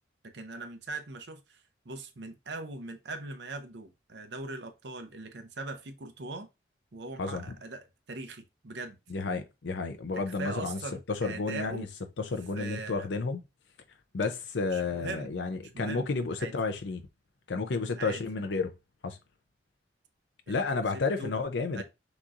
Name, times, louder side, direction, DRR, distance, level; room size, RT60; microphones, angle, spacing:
voice 1, 0.3-1.6 1.9-6.5 6.9-9.0 10.1-11.9 12.5-13.1 14.7-15.3 15.7-16.1 16.4-16.5 17.9-18.2 20.5-20.6 20.9-21.3 21.7-21.8, right 3 dB, 75° right, 0.7 m, -40 dB
voice 2, 9.1-10.8 11.1-11.9 12.2-13.4 14.1-17.0 17.5-18.7 19.0-19.2 20.5-21.8, left 4 dB, 80° left, 0.6 m, -31 dB
6.1 x 3.0 x 2.5 m
head